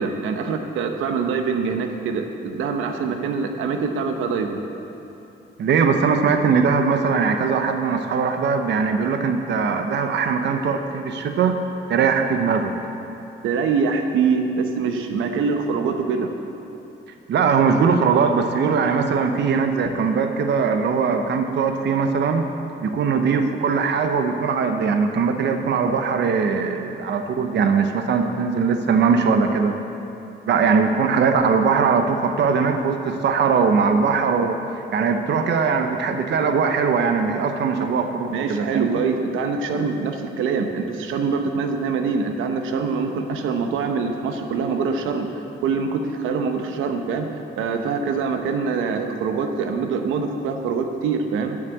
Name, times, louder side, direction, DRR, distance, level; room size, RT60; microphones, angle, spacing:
voice 1, 0.0-4.6 13.4-16.3 38.3-45.3 45.6-47.3 47.6-51.6, right 5 dB, 85° right, 5 dB, 0.9 m, -24 dB
voice 2, 5.6-11.6 11.9-12.7 17.3-22.5 22.8-29.8 30.4-34.6 34.9-39.0, right 5 dB, 60° right, 6 dB, 0.8 m, -20 dB
9.7 x 7.3 x 8.0 m, 2.8 s
cardioid pair, 90°, 20 cm